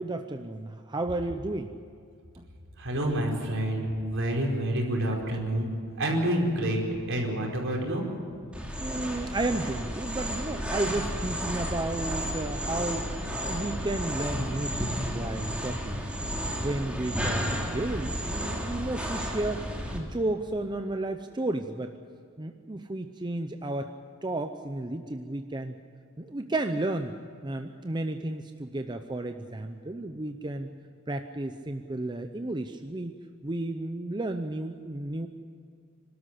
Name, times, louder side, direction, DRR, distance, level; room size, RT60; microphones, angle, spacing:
voice 1, 0.0-1.7 2.4-2.5 3.0-3.1 8.7-13.1 13.4-16.0 16.4-19.6 19.9-21.9 22.4-23.9 24.2-25.7 26.2-27.1 27.4-30.7 31.1-33.1 33.4-35.3, right 2 dB, 20° right, 7 dB, 0.7 m, -32 dB
voice 2, 2.8-5.7 6.0-8.0, right 1 dB, 60° right, 0 dB, 4.8 m, -28 dB
sound 1, 8.5-20.0, equal, 5° right, 2.8 m, -32 dB
25.0 x 13.0 x 9.9 m, 2.4 s
head